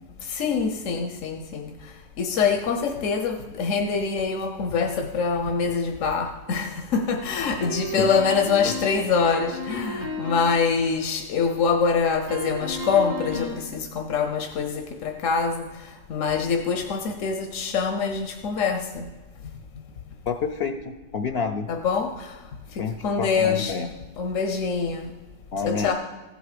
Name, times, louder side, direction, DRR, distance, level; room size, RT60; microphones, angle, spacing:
voice 1, 0.2-19.1 21.7-22.4 22.7-23.8 24.2-25.1 25.6-25.9, left 5 dB, 85° left, 5 dB, 1.2 m, -25 dB
sound 1, 7.6-10.6 12.3-13.7, left 1 dB, 55° right, 3.2 m, -33 dB
voice 2, 20.3-21.7 22.8-23.9 25.5-25.9, left 5 dB, 60° left, 8 dB, 0.8 m, -28 dB
14.5 x 8.0 x 5.0 m, 1.2 s
omnidirectional pair, 1.3 m